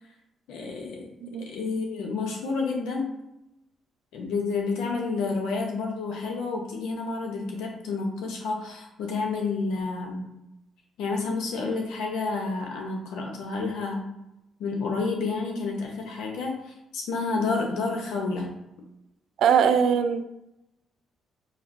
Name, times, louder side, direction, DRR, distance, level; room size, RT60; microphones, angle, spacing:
voice 1, 0.5-1.1 1.5-3.0 4.1-10.3 11.0-14.0 14.6-18.6, left 4 dB, 85° left, 1 dB, 0.8 m, -30 dB
voice 2, 19.4-20.2, right 7 dB, 75° right, 9 dB, 0.4 m, -21 dB
5.8 x 2.8 x 2.6 m, 0.88 s
cardioid pair, 90°, 0 cm